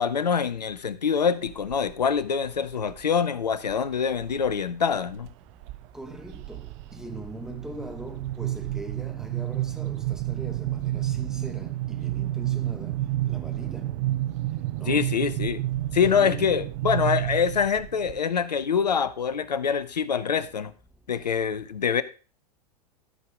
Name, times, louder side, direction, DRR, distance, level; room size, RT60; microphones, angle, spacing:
voice 1, 0.0-5.3 14.9-15.6 15.9-20.7 21.1-22.0, left 6 dB, 80° left, 0.8 m, -25 dB
sound 1, 1.5-2.0 2.5-3.0 3.7-4.5 4.9-5.3 5.6-18.2, right 15 dB, 45° right, 0.5 m, -30 dB
voice 2, 5.9-13.0 13.2-14.0 14.8-15.2 16.0-16.5 17.0-17.3, right 1 dB, 5° right, 1.5 m, -41 dB
13.0 x 4.7 x 5.1 m
figure-of-eight pair, 90°, 21 cm